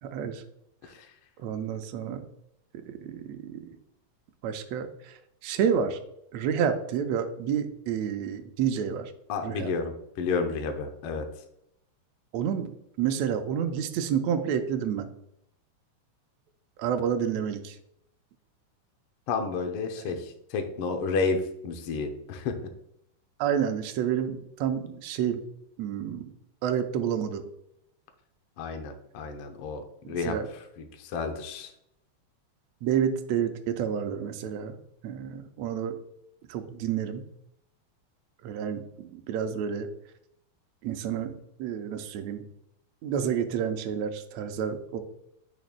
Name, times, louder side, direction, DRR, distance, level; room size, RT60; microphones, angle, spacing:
voice 1, 0.0-0.4 1.4-2.2 2.7-3.8 4.4-6.0 6.3-9.1 9.4-9.7 12.3-12.7 13.0-15.1 16.8-17.8 20.0-20.2 23.4-25.4 25.8-26.3 26.6-27.4 30.0-30.5 32.8-34.8 35.0-36.0 36.5-37.3 38.4-39.9 40.8-41.3 41.6-42.4 43.0-45.0, right 8 dB, 75° right, 6 dB, 1.7 m, -29 dB
voice 2, 9.3-11.3 19.3-22.6 28.6-30.4 30.8-31.7, left 4 dB, 90° left, 5 dB, 1.2 m, -31 dB
9.2 x 5.2 x 2.2 m, 0.76 s
omnidirectional pair, 3.5 m